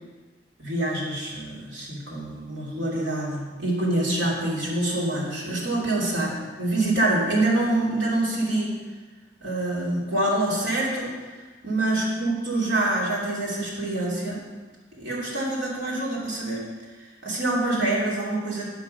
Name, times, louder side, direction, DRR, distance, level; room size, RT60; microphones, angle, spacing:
voice 1, 0.6-8.8 9.4-11.1 11.6-14.4 15.0-16.6 17.0-18.7, right 1 dB, 75° right, -5 dB, 2.9 m, -26 dB
10.5 x 5.8 x 5.3 m, 1.4 s
head